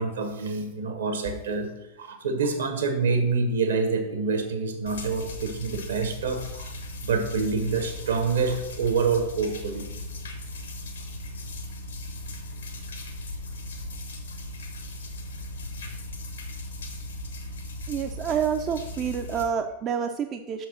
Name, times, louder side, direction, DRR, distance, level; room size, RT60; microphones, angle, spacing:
voice 1, 0.0-1.7 2.0-6.7 7.0-9.8, right 4 dB, 65° right, 6 dB, 1.2 m, -26 dB
sound 1, 4.8-19.4, left 1 dB, 70° left, 1.1 m, -37 dB
voice 2, 17.9-20.7, right 7 dB, 30° right, 6 dB, 0.5 m, -28 dB
6.0 x 4.5 x 6.1 m, 0.96 s
figure-of-eight pair, 90°, 0 cm